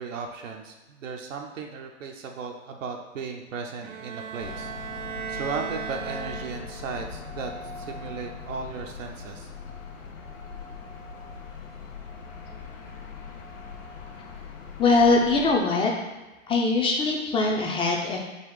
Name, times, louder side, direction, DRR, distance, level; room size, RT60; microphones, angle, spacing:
voice 1, 0.0-9.5, right 5 dB, 75° right, 2 dB, 0.8 m, -36 dB
Bowed string instrument, 3.8-7.0, right 8 dB, 40° right, 0.4 m, -37 dB
sound 1, 4.4-15.6, left 5 dB, 75° left, 0.9 m, -41 dB
voice 2, 14.8-15.9 16.5-18.2, left 3 dB, 15° left, 0 dB, 0.6 m, -22 dB
4.1 x 2.4 x 4.7 m, 1.2 s
hypercardioid pair, 105°, 39 cm